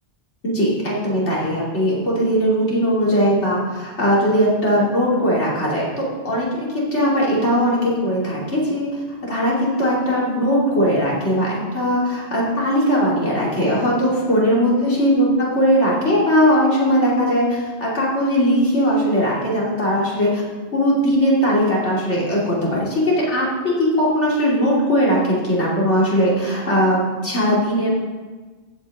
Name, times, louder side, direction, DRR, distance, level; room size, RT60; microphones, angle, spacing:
voice 1, 0.4-9.0 9.3-15.3 15.6-20.4 20.7-27.9, equal, 75° left, -5 dB, 3.3 m, -19 dB
15.0 x 7.8 x 3.6 m, 1.3 s
omnidirectional pair, 1.2 m